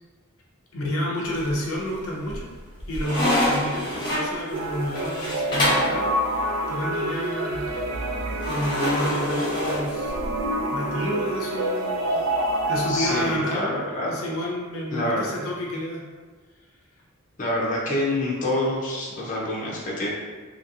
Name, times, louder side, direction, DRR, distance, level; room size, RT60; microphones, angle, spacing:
voice 1, 0.7-2.5 2.9-7.7 8.4-10.1 10.7-12.2 12.7-13.7 14.1-16.0, equal, 80° left, -2 dB, 0.6 m, -30 dB
sound 1, 1.3-1.9 2.3-6.0 8.4-10.5, left 1 dB, 20° left, 0.9 m, -26 dB
sound 2, 4.5-13.4, right 1 dB, 75° right, 0.4 m, -27 dB
voice 2, 12.9-14.2 14.9-15.2 17.4-20.1, left 1 dB, 35° left, -5 dB, 0.6 m, -26 dB
2.8 x 2.7 x 2.6 m, 1.4 s
head